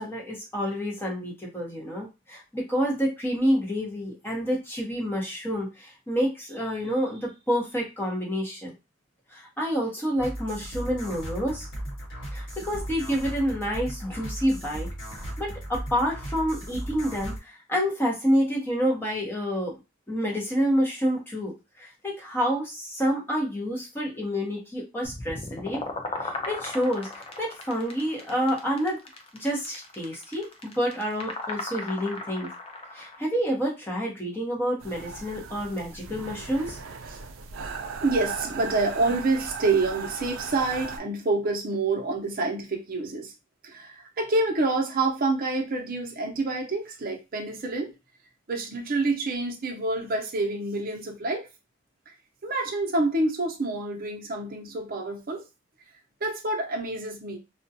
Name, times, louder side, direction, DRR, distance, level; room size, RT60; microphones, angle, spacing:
voice 1, 0.0-8.7 9.3-11.7 12.3-19.7 20.1-21.5 21.8-25.8 26.2-29.0 29.4-32.5 32.9-36.8, equal, 10° left, 0.8 m, -28 dB
sound 1, 10.2-17.4, right 1 dB, 75° left, 1.2 m, -36 dB
sound 2, 25.0-33.2, left 3 dB, 30° left, 0.4 m, -37 dB
sound 3, 34.8-41.0, right 5 dB, 85° right, 0.4 m, -37 dB
voice 2, 38.0-43.3 43.6-47.9 48.5-51.5 52.4-55.4 56.2-57.4, right 2 dB, 50° right, 0.6 m, -27 dB
2.3 x 2.2 x 2.7 m
head